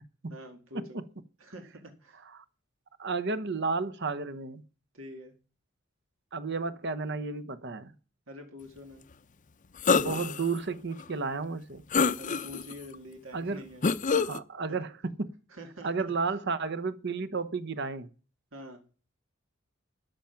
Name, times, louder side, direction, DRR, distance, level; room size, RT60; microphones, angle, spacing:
voice 1, 0.3-1.0 1.4-2.2 4.9-5.3 8.3-9.1 12.2-13.9 14.7-14.8 15.5-15.9 18.5-18.8, left 1 dB, 85° right, 2.1 m, -46 dB
voice 2, 3.0-4.6 6.3-7.9 9.9-11.8 13.3-13.6 14.1-15.4 15.8-18.1, right 4 dB, 60° right, 0.9 m, -32 dB
sound 1, 9.8-10.4 11.0-11.1 11.9-12.7 13.8-14.4, left 5 dB, 40° left, 0.6 m, -25 dB
13.0 x 8.8 x 5.8 m
head